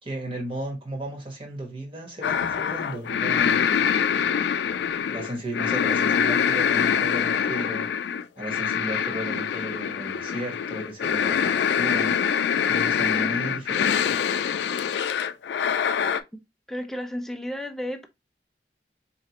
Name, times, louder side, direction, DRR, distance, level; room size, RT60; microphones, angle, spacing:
voice 1, 0.0-3.7 5.1-8.0 8.3-12.1 12.7-14.1, right 1 dB, 30° right, 1.3 m, -35 dB
sound 1, 2.2-16.2, left 7 dB, 70° left, 0.3 m, -24 dB
voice 2, 16.7-18.1, equal, ahead, 0.4 m, -32 dB
4.3 x 2.8 x 2.9 m
head